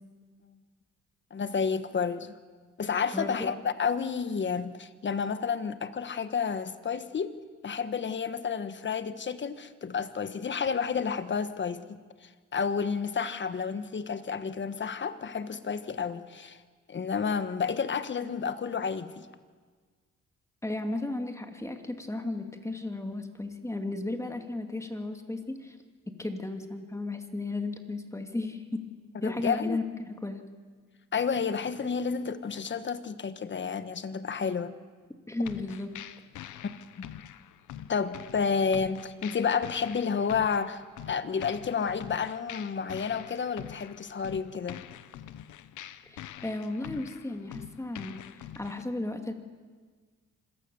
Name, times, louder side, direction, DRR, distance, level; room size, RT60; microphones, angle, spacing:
voice 1, 1.3-2.3 2.8-7.3 7.6-16.6 16.9-19.3 29.2-29.8 31.1-34.8 36.6-37.0 37.9-44.8, left 6 dB, 40° left, 11 dB, 1.4 m, -31 dB
voice 2, 3.1-3.5 20.6-25.8 26.2-28.8 29.2-30.4 35.3-35.9 46.0-49.3, left 2 dB, 10° left, 5 dB, 2.4 m, -34 dB
sound 1, 35.4-48.8, left 11 dB, 80° left, 1.0 m, -45 dB
26.0 x 18.0 x 7.0 m, 1.5 s
cardioid pair, 90°, 30 cm